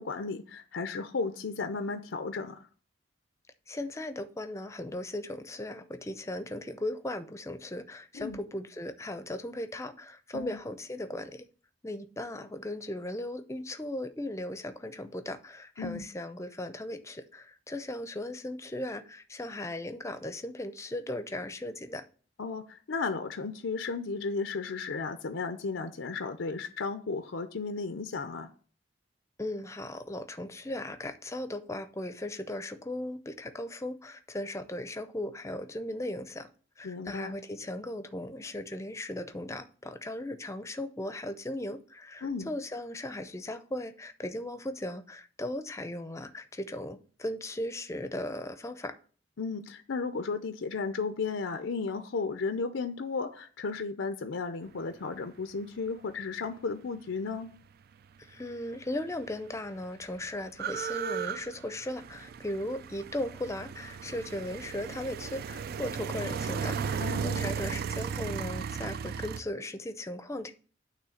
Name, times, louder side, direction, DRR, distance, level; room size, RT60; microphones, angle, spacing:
voice 1, 0.0-2.6 8.1-8.4 10.3-10.6 15.8-16.1 22.4-28.5 36.8-37.3 42.2-42.5 49.4-57.5 67.0-67.5, left 4 dB, 85° left, 0.6 m, -34 dB
voice 2, 3.7-11.4 11.8-22.0 29.4-36.5 36.8-49.0 58.2-70.5, left 1 dB, 15° left, 0.5 m, -37 dB
sound 1, 58.7-58.8 59.0-69.4, right 6 dB, 55° right, 0.3 m, -35 dB
9.0 x 3.2 x 6.4 m
head